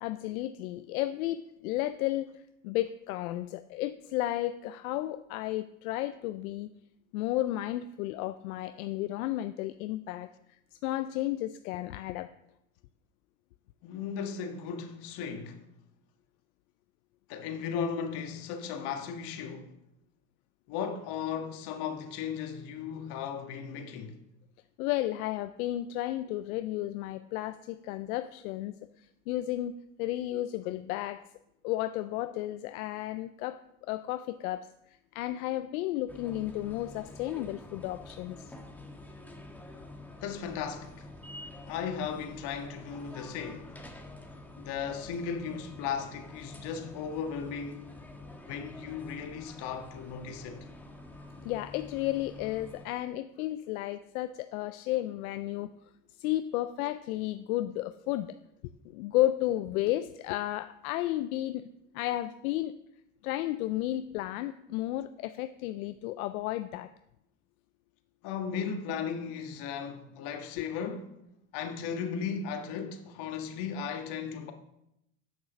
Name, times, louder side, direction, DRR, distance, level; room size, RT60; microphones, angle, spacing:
voice 1, 0.0-6.7 7.1-10.3 10.8-12.3 24.8-31.2 31.6-38.5 51.4-55.7 56.2-58.4 58.8-61.6 61.9-62.7 63.2-66.9 70.6-70.7, left 15 dB, 90° left, 0.6 m, -33 dB
voice 2, 13.8-15.6 17.3-19.7 20.7-24.2 40.2-41.1 41.7-43.8 44.6-47.9 48.5-50.7 68.2-71.2 71.5-74.5, left 7 dB, 70° left, 1.6 m, -36 dB
sound 1, 36.1-52.9, left 2 dB, 5° left, 1.6 m, -48 dB
8.6 x 6.4 x 6.8 m
supercardioid pair, 90°, 42 cm